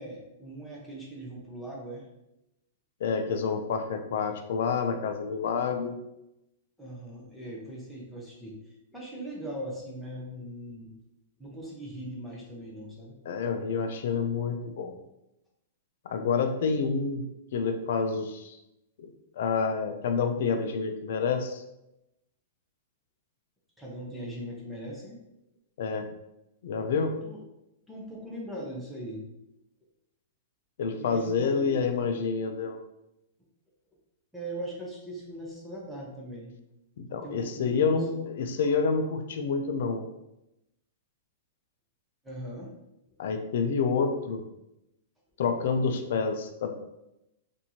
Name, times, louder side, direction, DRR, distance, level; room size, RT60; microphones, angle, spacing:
voice 1, 0.0-2.1 6.8-10.9 11.4-13.2 23.8-25.2 27.2-27.4 27.9-29.3 31.0-32.2 34.3-36.5 37.2-38.1 42.2-42.7, right 1 dB, 5° right, -4 dB, 0.7 m, -40 dB
voice 2, 3.0-6.0 13.3-14.9 16.1-17.2 17.5-18.6 19.0-19.1 19.4-21.6 25.8-26.1 26.6-27.2 30.8-32.8 37.0-40.1 43.2-44.4 45.4-46.7, left 5 dB, 55° left, 6 dB, 0.5 m, -28 dB
4.3 x 2.6 x 2.8 m, 0.88 s
supercardioid pair, 170°, 0 cm